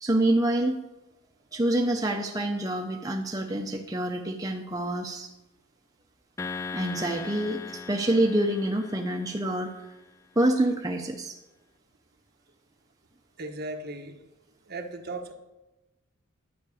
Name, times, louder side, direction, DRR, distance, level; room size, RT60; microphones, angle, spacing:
voice 1, 0.0-0.8 1.5-5.3 6.7-9.7 10.4-11.4, right 1 dB, 15° right, 2 dB, 0.7 m, -26 dB
sound 1, 6.4-9.9, left 4 dB, 15° left, 0.3 m, -39 dB
voice 2, 13.4-14.1 14.6-15.3, right 2 dB, 45° right, 3 dB, 1.3 m, -36 dB
11.0 x 6.0 x 8.5 m, 1.0 s
head